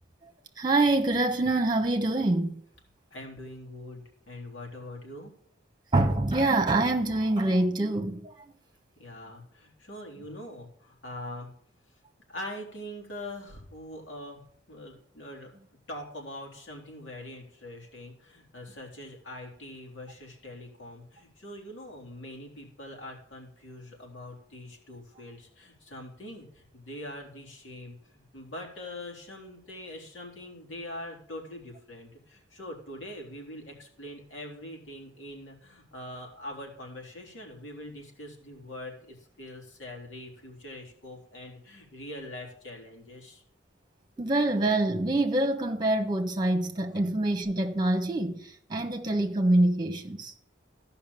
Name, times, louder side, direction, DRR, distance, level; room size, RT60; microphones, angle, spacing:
voice 1, 0.6-2.5 5.9-8.3 44.2-48.3 48.7-50.3, right 2 dB, 25° right, 1.3 m, -25 dB
voice 2, 3.1-5.3 9.0-11.5 12.3-14.4 14.7-15.5 15.9-43.4, left 1 dB, 85° left, 3.5 m, -43 dB
14.0 x 5.7 x 7.0 m
head